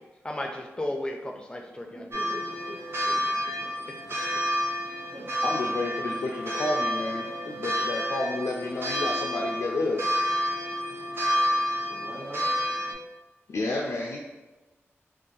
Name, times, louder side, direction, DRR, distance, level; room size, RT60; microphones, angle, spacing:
voice 1, 0.0-2.3 3.1-3.2 3.9-4.0, left 1 dB, 20° left, 2 dB, 0.5 m, -35 dB
voice 2, 1.9-2.8 3.1-3.2 3.5-3.6 4.8-5.3 7.1-7.2 11.8-12.5, equal, 80° right, -8 dB, 1.3 m, -43 dB
sound 1, 2.1-12.9, equal, 55° right, 0.7 m, -29 dB
voice 3, 5.4-10.1 13.5-14.2, left 2 dB, 80° left, -1 dB, 0.3 m, -30 dB
2.5 x 2.4 x 3.8 m, 1.2 s
wide cardioid pair, 85°, 5 cm